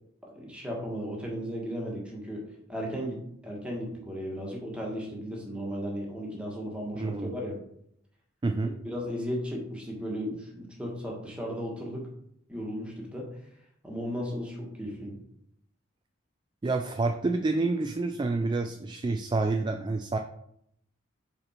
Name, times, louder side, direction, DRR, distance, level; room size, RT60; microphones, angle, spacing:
voice 1, 0.3-2.4 2.7-7.6 8.8-12.1 12.5-13.3 13.8-15.2, equal, 5° right, -2 dB, 1.5 m, -35 dB
voice 2, 7.0-7.3 8.4-8.7 16.6-20.2, right 3 dB, 25° right, 5 dB, 0.3 m, -28 dB
5.1 x 4.4 x 4.3 m, 0.71 s
head